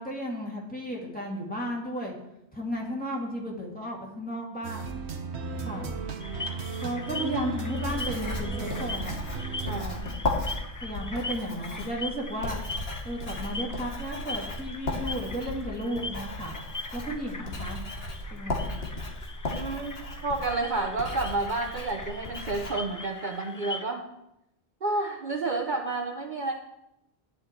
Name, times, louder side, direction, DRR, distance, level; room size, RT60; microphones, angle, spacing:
voice 1, 0.0-2.1 2.5-5.0 5.6-5.9 6.8-9.2 10.8-12.6 13.0-16.6 16.9-17.8 18.3-18.8, equal, 10° left, -3 dB, 2.3 m, -34 dB
sound 1, 4.6-9.8, right 4 dB, 80° right, 1.3 m, -35 dB
voice 2, 5.3-5.8 9.6-10.2 19.5-24.0 24.8-26.5, right 3 dB, 50° right, 2 dB, 1.0 m, -31 dB
sound 2, 6.2-23.8, left 3 dB, 25° left, 0.5 m, -41 dB
Writing, 7.6-22.7, left 2 dB, 65° left, 2.0 m, -36 dB
11.0 x 9.1 x 4.5 m, 0.84 s
omnidirectional pair, 1.1 m